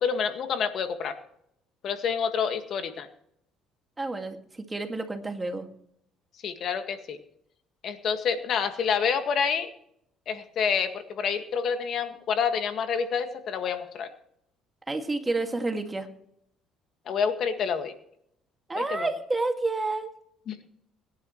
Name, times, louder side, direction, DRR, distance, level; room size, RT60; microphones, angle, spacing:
voice 1, 0.0-1.2 1.8-3.1 6.4-7.2 7.8-9.7 10.3-14.1 17.1-17.9 18.8-19.1 20.5-20.7, left 6 dB, 55° left, 7 dB, 1.8 m, -28 dB
voice 2, 4.0-5.7 14.9-16.1 18.7-20.1, right 3 dB, 15° right, 5 dB, 2.0 m, -29 dB
24.0 x 10.5 x 3.2 m, 0.71 s
cardioid pair, 105°, 0 cm